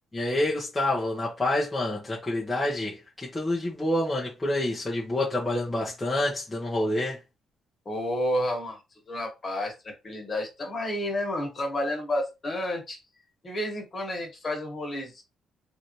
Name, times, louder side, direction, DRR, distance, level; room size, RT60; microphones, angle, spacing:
voice 1, 0.1-7.2, left 1 dB, 15° left, 1.1 m, -28 dB
voice 2, 7.8-8.8 9.1-13.0 13.4-15.2, left 1 dB, 35° left, 1.7 m, -30 dB
4.0 x 2.8 x 3.2 m
cardioid pair, 90°, 0 cm